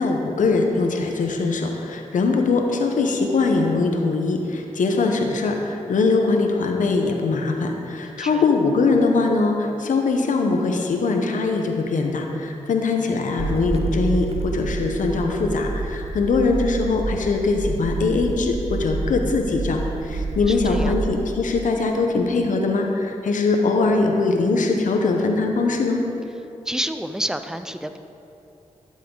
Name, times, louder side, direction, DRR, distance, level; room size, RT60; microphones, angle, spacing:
voice 1, 0.0-26.0, left 3 dB, 80° left, 3 dB, 1.0 m, -21 dB
voice 2, 8.0-8.4 20.1-21.0 26.7-28.0, right 1 dB, 5° right, 9 dB, 0.6 m, -30 dB
sound 1, 13.4-21.1, right 3 dB, 50° right, 0.7 m, -28 dB
12.5 x 7.5 x 3.9 m, 2.8 s
cardioid pair, 45°, 13 cm